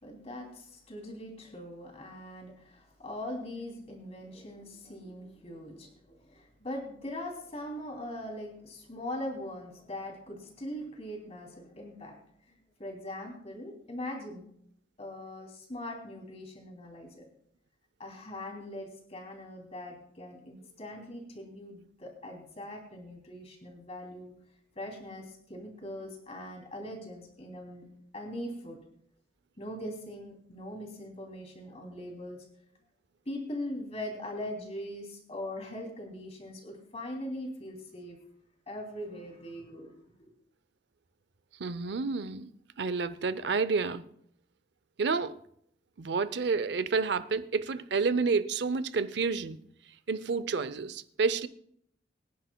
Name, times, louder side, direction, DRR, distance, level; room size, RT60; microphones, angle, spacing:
voice 1, 0.0-12.2 12.5-14.5 15.0-17.3 18.0-24.3 24.7-27.9 28.1-28.8 29.6-32.4 33.2-38.2 38.7-39.9, left 1 dB, 35° left, 3.0 m, -41 dB
voice 2, 41.6-42.5 42.8-44.0 45.0-45.4 46.0-49.6 50.1-51.5, right 4 dB, 65° right, 0.6 m, -29 dB
25.0 x 10.0 x 2.3 m
head